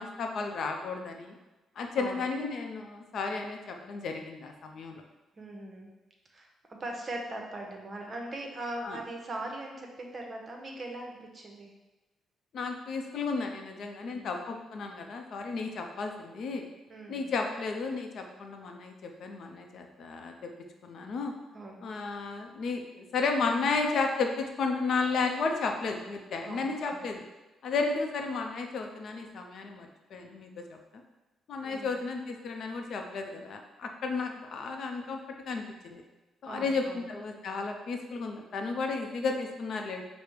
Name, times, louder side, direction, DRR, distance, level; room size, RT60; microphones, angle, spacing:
voice 1, 0.0-1.3 1.8-5.0 8.8-9.0 12.5-16.7 17.1-20.5 20.8-21.3 21.8-27.2 27.6-30.8 31.5-35.2 35.5-36.0 36.4-40.0, left 4 dB, 65° left, 3 dB, 0.6 m, -33 dB
voice 2, 5.4-5.9 6.3-11.7 14.0-14.4 16.9-17.3 21.5-21.9 26.4-27.0 31.6-31.9 36.5-37.1, right 1 dB, 35° right, 1 dB, 0.8 m, -40 dB
5.0 x 2.1 x 4.5 m, 1.1 s
cardioid pair, 90°, 0 cm